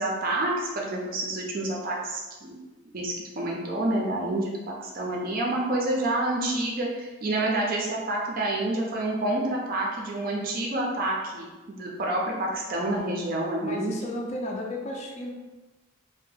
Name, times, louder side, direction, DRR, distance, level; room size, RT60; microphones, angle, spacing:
voice 1, 0.0-2.6 2.9-13.9, right 1 dB, 40° right, -2 dB, 0.5 m, -28 dB
voice 2, 12.9-15.3, left 1 dB, 30° left, 0 dB, 0.4 m, -35 dB
2.7 x 2.1 x 3.9 m, 1.2 s
head